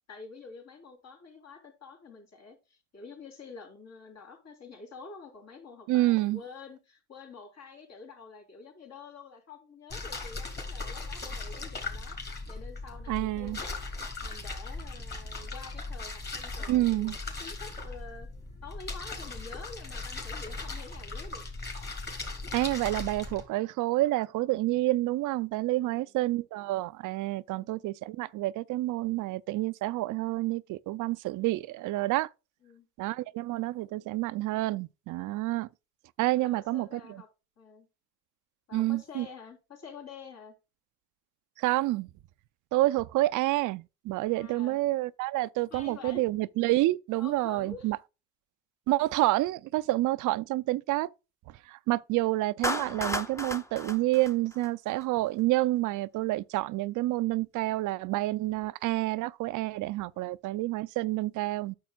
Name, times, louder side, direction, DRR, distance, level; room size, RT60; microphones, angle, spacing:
voice 1, 0.1-12.2 12.5-13.8 14.2-18.3 18.6-21.4 25.7-26.4 27.5-27.7 32.6-32.9 36.3-37.3 37.6-37.9 38.7-40.5 44.3-44.8 45.7-46.3 47.2-47.9 60.1-60.2, left 4 dB, 60° left, 3.5 m, -48 dB
voice 2, 5.9-6.4 13.1-13.6 16.7-17.2 22.5-32.3 33.0-35.7 36.2-36.9 38.7-39.3 41.6-42.1 42.7-48.0 48.9-51.1 51.7-61.7, right 18 dB, 85° right, 0.5 m, -28 dB
sound 1, 9.9-23.4, left 3 dB, 35° left, 3.0 m, -38 dB
Clapping, 52.6-55.0, left 1 dB, 10° left, 0.7 m, -34 dB
9.4 x 6.9 x 2.3 m
cardioid pair, 90°, 30 cm